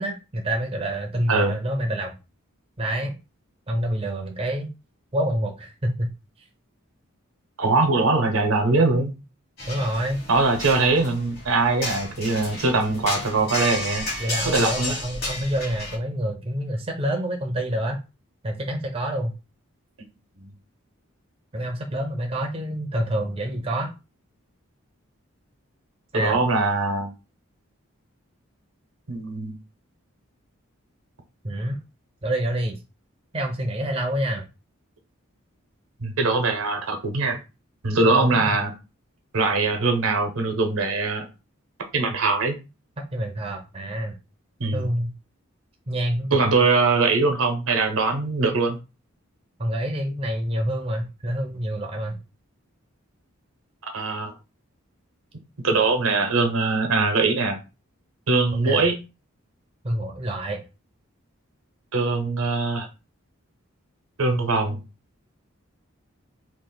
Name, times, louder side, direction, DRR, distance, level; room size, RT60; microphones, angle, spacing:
voice 1, 0.0-2.2 2.8-3.1 3.7-4.7 5.1-6.1 9.7-10.2 14.2-18.0 18.4-19.3 21.5-23.9 26.1-26.4 31.4-31.8 32.2-32.8 33.3-34.5 38.0-38.6 43.0-44.2 44.7-45.1 45.9-46.4 49.6-52.2 58.6-58.9 59.8-60.6, right 1 dB, 25° right, 0.5 m, -27 dB
voice 2, 7.6-9.1 10.3-14.1 14.4-15.0 20.0-20.1 20.4-20.5 26.1-27.1 29.1-29.6 36.0-37.4 37.8-38.7 39.3-41.3 41.9-42.6 44.6-44.8 46.3-48.8 53.9-54.3 55.6-57.6 58.3-59.0 61.9-62.9 64.2-64.8, right 3 dB, 80° right, 0.9 m, -22 dB
sound 1, 9.6-16.0, left 2 dB, 45° left, 1.5 m, -32 dB
3.1 x 2.5 x 3.9 m
head